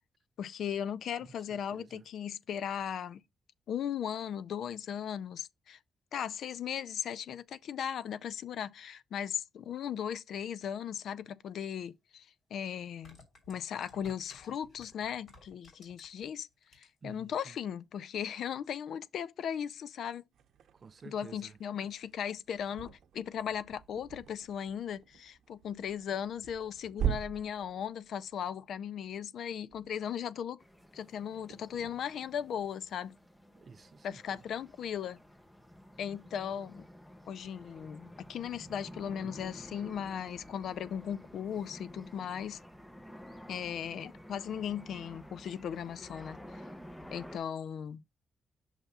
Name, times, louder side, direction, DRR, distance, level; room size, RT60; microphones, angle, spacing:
voice 1, 0.4-3.2 3.7-5.8 6.1-13.2 13.5-16.5 16.7-20.3 21.0-30.6 30.9-33.2 34.0-35.2 36.0-36.8 37.3-42.6 43.5-46.4 47.1-48.0, left 8 dB, 70° left, 0.4 m, -37 dB
voice 2, 1.5-2.1 17.0-17.5 20.7-21.6 33.5-34.4 38.6-39.0, right 4 dB, 35° right, 0.4 m, -52 dB
sound 1, 11.9-12.0 12.8-16.3 16.6-17.1 17.4-17.5, left 3 dB, 50° left, 2.8 m, -56 dB
sound 2, 20.3-35.3, right 9 dB, 75° right, 0.7 m, -44 dB
sound 3, 30.6-47.4, equal, 5° left, 0.6 m, -51 dB
5.9 x 3.4 x 5.4 m
cardioid pair, 135°, 0 cm